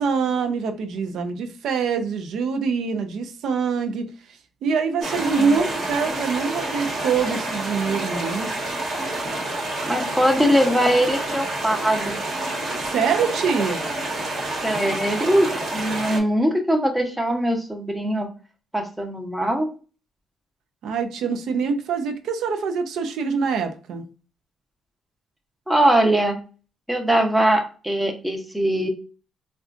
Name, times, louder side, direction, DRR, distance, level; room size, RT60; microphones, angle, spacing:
voice 1, 0.0-4.1 4.6-8.5 12.8-13.9 20.8-24.0, right 5 dB, 75° right, 7 dB, 0.4 m, -24 dB
sound 1, 5.0-16.2, right 2 dB, 60° right, 1.1 m, -28 dB
voice 2, 9.9-12.2 14.6-18.3 18.7-19.7 25.7-26.4 26.9-28.9, right 1 dB, 5° right, 3 dB, 0.7 m, -21 dB
3.7 x 2.3 x 2.4 m, 0.36 s
cardioid pair, 90°, 0 cm